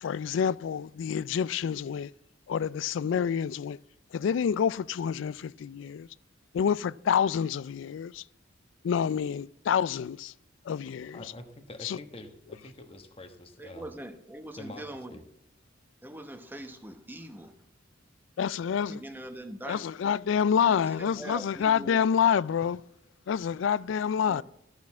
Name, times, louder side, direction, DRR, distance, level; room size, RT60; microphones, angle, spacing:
voice 1, 0.0-2.1 2.5-3.8 4.1-6.1 6.5-8.2 8.8-10.3 10.7-11.2 11.8-12.0 18.4-19.0 19.7-22.8 23.3-24.4, left 7 dB, 70° left, 0.3 m, -27 dB
voice 2, 11.1-13.9 14.5-14.8 15.1-15.2, left 2 dB, 30° left, 1.2 m, -46 dB
voice 3, 13.6-15.2 16.0-17.5 18.9-20.1 20.6-22.0 24.3-24.4, right 1 dB, 10° right, 0.9 m, -42 dB
13.0 x 6.4 x 7.2 m
head